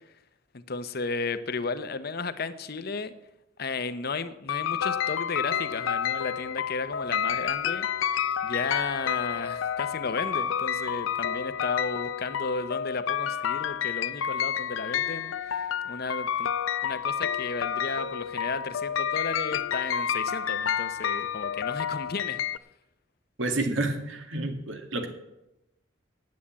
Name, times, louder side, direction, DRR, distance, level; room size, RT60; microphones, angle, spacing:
voice 1, 0.5-3.1 3.6-7.9 8.4-15.3 15.8-16.5 16.8-22.4, left 4 dB, 55° left, 12 dB, 0.8 m, -33 dB
sound 1, 4.5-22.6, left 8 dB, 85° left, 0.5 m, -30 dB
voice 2, 23.4-25.1, right 2 dB, 80° right, 5 dB, 2.1 m, -29 dB
9.5 x 8.5 x 8.6 m, 0.90 s
head